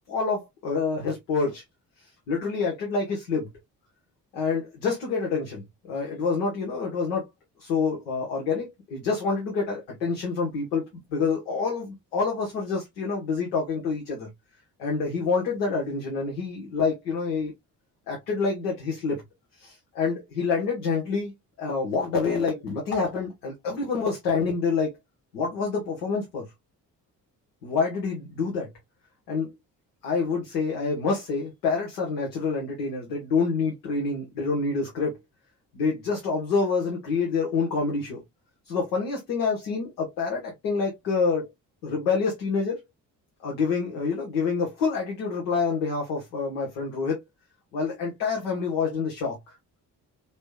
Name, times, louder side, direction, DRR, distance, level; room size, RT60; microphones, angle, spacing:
voice 1, 0.1-1.6 2.3-3.5 4.3-7.3 7.6-14.3 14.8-17.5 18.1-19.2 19.6-21.3 21.6-25.0 25.3-26.4 27.6-28.7 29.3-29.5 30.0-35.2 35.7-38.2 38.7-41.5 41.8-42.8 43.4-47.2 47.7-49.5, left 4 dB, 70° left, 1.4 m, -27 dB
5.0 x 3.3 x 2.3 m
figure-of-eight pair, 40°, 50 cm